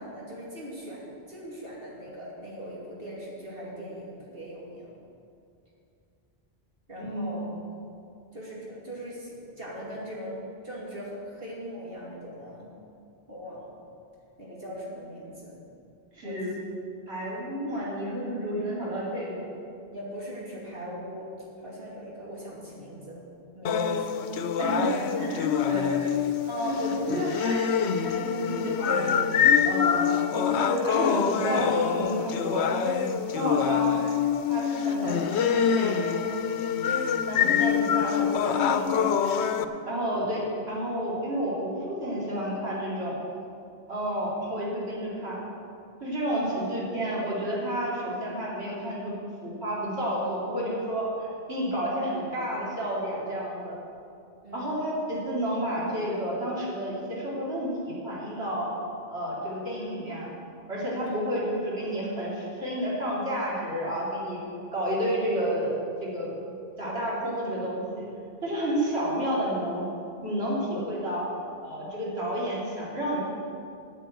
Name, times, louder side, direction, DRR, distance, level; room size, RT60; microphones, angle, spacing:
voice 1, 0.0-4.9 6.9-7.5 8.3-12.7 13.3-13.7 14.4-15.6 16.2-16.5 19.9-21.3 21.6-23.2 23.5-24.1 46.3-46.7 54.4-54.7 61.0-61.1, equal, 60° right, -5 dB, 2.8 m, -40 dB
voice 2, 7.0-7.4 16.1-16.5 17.1-19.5 24.6-25.9 26.5-27.7 28.0-29.1 29.6-32.7 33.3-34.0 34.5-36.0 37.3-39.2 39.9-43.2 43.9-45.4 46.0-49.1 49.4-53.8 54.5-58.7 59.1-60.3 60.7-64.4 64.7-65.7 66.0-66.4 66.8-68.1 68.4-69.8 70.2-71.2 71.6-73.2, equal, 75° right, -6 dB, 3.1 m, -30 dB
sound 1, 23.6-39.6, left 7 dB, 90° left, 0.9 m, -25 dB
9.1 x 9.1 x 8.0 m, 2.5 s
omnidirectional pair, 1.1 m